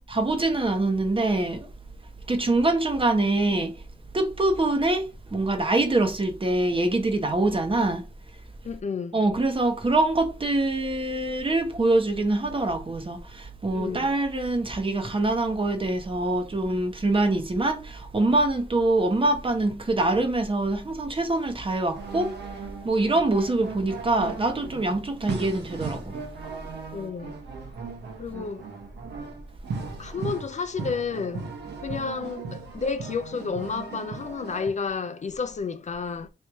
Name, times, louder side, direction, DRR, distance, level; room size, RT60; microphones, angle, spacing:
voice 1, 0.1-1.7 2.3-3.8 4.1-8.1 9.1-22.3 22.8-26.1, right 2 dB, 30° right, 1.1 m, -24 dB
voice 2, 8.6-9.2 13.7-14.1 26.9-27.3 28.2-28.7 30.0-31.5 31.8-36.3, left 5 dB, 45° left, 0.5 m, -31 dB
sound 1, 21.2-34.7, right 4 dB, 75° right, 1.1 m, -38 dB
3.2 x 2.8 x 4.5 m
cardioid pair, 75°, 18 cm